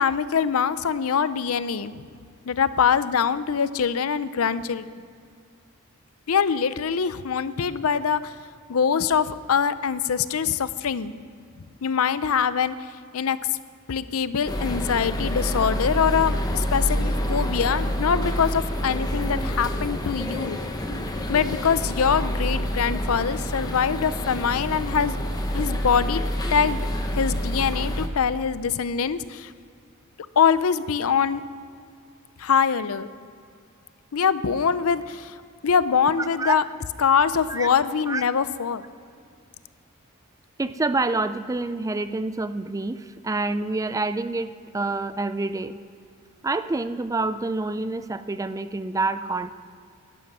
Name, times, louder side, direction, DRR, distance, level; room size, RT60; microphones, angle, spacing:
voice 1, 0.0-2.1 2.5-4.8 6.3-8.3 8.7-11.1 11.8-12.7 13.1-13.4 13.9-20.6 21.3-25.2 25.5-26.2 26.5-26.8 27.1-29.5 30.4-31.4 32.4-33.1 34.1-35.4 35.6-36.6 37.0-38.8, left 6 dB, 75° left, 15 dB, 0.5 m, -23 dB
sound 1, 14.5-28.1, equal, 20° left, 1.0 m, -27 dB
voice 2, 40.6-45.8 46.4-49.5, right 3 dB, 15° right, 12 dB, 0.4 m, -27 dB
11.5 x 11.5 x 6.3 m, 2.3 s
head